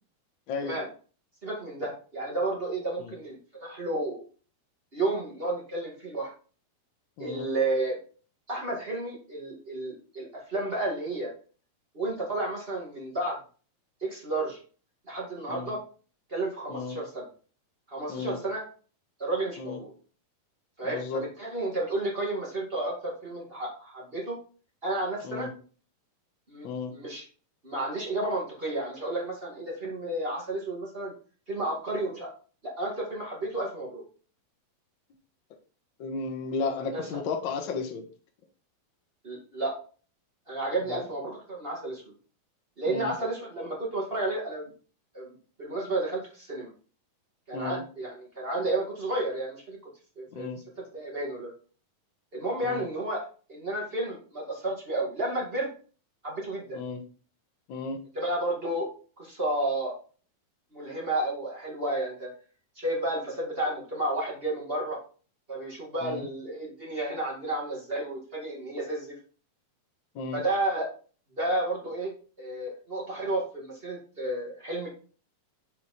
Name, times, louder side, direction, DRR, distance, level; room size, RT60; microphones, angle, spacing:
voice 1, 1.4-4.2 4.9-6.3 7.2-8.0 8.5-11.3 11.9-13.4 14.0-14.6 15.1-15.8 16.3-17.3 17.9-18.6 19.2-19.9 20.8-24.4 24.8-25.5 26.5-26.7 26.9-27.2 27.6-31.1 31.5-32.3 32.8-34.0 36.9-37.2 39.2-39.7 40.5-42.1 42.8-44.7 45.1-46.7 47.5-49.8 50.1-50.5 50.9-51.5 52.3-53.2 53.5-55.7 56.2-56.8 58.1-58.9 59.2-59.9 60.7-62.3 62.7-65.0 65.5-69.1 70.3-70.9 71.4-74.9, right 2 dB, 20° right, -4 dB, 1.6 m, -31 dB
voice 2, 20.8-21.2 25.2-25.5 26.6-26.9 36.0-38.0 40.8-41.0 42.9-43.1 47.5-47.8 50.3-50.6 52.6-52.9 56.7-57.0 57.7-58.0 66.0-66.3 70.1-70.4, left 4 dB, 85° left, 3 dB, 1.0 m, -34 dB
7.0 x 4.6 x 4.2 m, 0.39 s
omnidirectional pair, 4.1 m